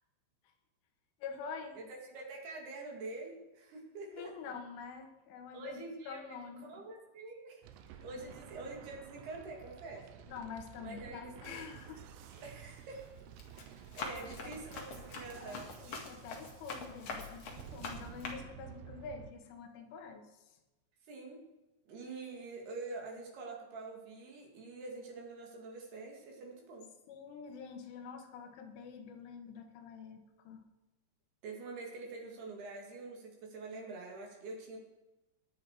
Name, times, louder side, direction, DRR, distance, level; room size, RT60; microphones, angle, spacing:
voice 1, 1.2-1.8 4.2-5.8 6.1-6.8 10.3-12.1 12.3-12.4 14.2-14.5 15.4-20.6 27.1-30.7, left 6 dB, 75° left, 5 dB, 3.6 m, -47 dB
voice 2, 1.8-4.3 5.5-6.2 6.6-10.0 10.8-11.6 12.4-13.1 13.7-15.7 21.1-21.4 21.9-26.9 31.4-34.8, right 3 dB, 60° right, 0 dB, 3.8 m, -46 dB
sound 1, 7.6-19.3, right 9 dB, 80° right, 2.6 m, -52 dB
Run, 12.2-12.6 13.1-18.3, left 4 dB, 55° left, 1.8 m, -45 dB
20.5 x 9.7 x 4.8 m, 1.0 s
omnidirectional pair, 5.8 m